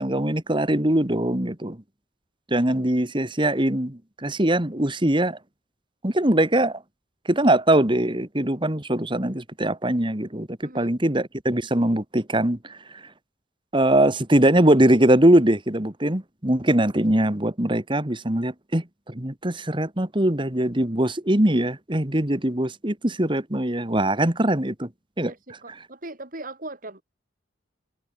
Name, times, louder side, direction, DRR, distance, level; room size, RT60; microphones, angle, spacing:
voice 1, 0.0-1.8 2.5-5.4 6.0-6.8 7.3-12.8 13.7-24.9 25.2-25.3, right 1 dB, 25° right, 2.1 m, -22 dB
voice 2, 10.6-11.0 25.2-27.0, right 2 dB, 45° right, 4.0 m, -39 dB
head